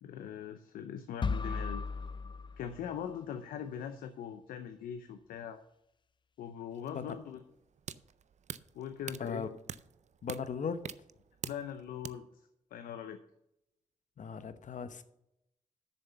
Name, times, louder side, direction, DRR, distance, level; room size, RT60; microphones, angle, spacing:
voice 1, 0.0-1.9 2.6-5.6 6.4-7.4 8.7-9.5 11.4-12.4 12.7-13.2, left 8 dB, 90° left, 9 dB, 0.6 m, -41 dB
sound 1, 1.2-3.2, left 4 dB, 35° left, 0.4 m, -36 dB
sound 2, 6.7-12.1, right 8 dB, 55° right, 0.5 m, -46 dB
voice 2, 9.2-9.5 10.2-10.9 14.2-15.0, left 6 dB, 60° left, 11 dB, 1.0 m, -37 dB
7.1 x 6.7 x 7.2 m, 0.82 s
supercardioid pair, 55°, 14 cm